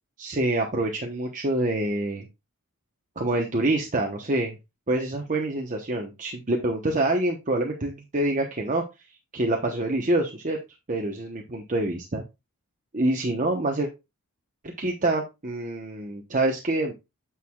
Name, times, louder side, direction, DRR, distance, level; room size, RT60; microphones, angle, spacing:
voice 1, 0.2-2.3 3.2-4.6 4.9-8.8 9.3-10.6 10.9-12.2 12.9-13.9 14.8-16.9, right 2 dB, 35° right, 2 dB, 1.0 m, -26 dB
9.0 x 6.3 x 2.4 m, 0.24 s
head